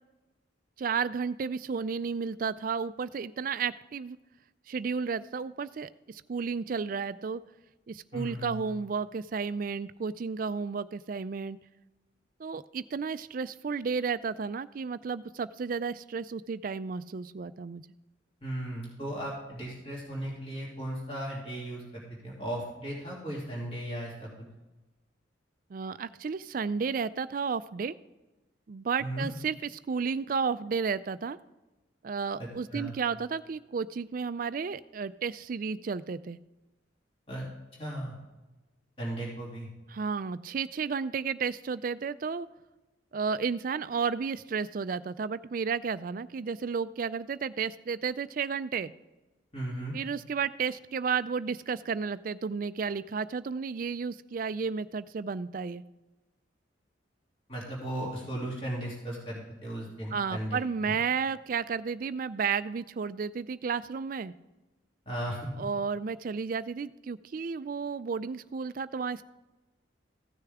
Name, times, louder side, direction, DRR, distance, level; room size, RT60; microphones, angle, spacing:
voice 1, 0.8-4.2 4.7-7.4 7.9-11.6 12.4-17.8 25.7-27.9 28.7-31.4 32.0-36.4 39.9-42.5 43.1-48.9 49.9-55.8 60.1-64.3 65.6-69.2, right 5 dB, 45° right, 14 dB, 0.3 m, -32 dB
voice 2, 8.1-8.6 18.4-24.5 29.0-29.3 32.4-32.9 37.3-37.4 37.8-38.1 39.0-39.7 49.5-49.9 57.5-60.6 60.9-61.0 65.1-65.5, right 1 dB, 30° left, -5 dB, 2.7 m, -36 dB
15.0 x 6.7 x 3.6 m, 1.1 s
head